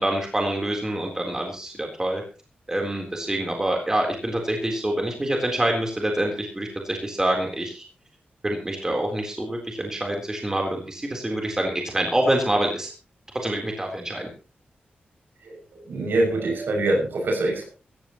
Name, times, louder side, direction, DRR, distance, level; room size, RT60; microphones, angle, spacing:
voice 1, 0.0-2.2 2.7-7.8 8.4-12.9 13.3-14.3, right 1 dB, 15° right, 1 dB, 3.7 m, -26 dB
voice 2, 15.4-17.6, right 2 dB, 75° right, 0 dB, 6.6 m, -24 dB
19.5 x 15.0 x 3.1 m, 0.33 s
wide cardioid pair, 115°, 3 cm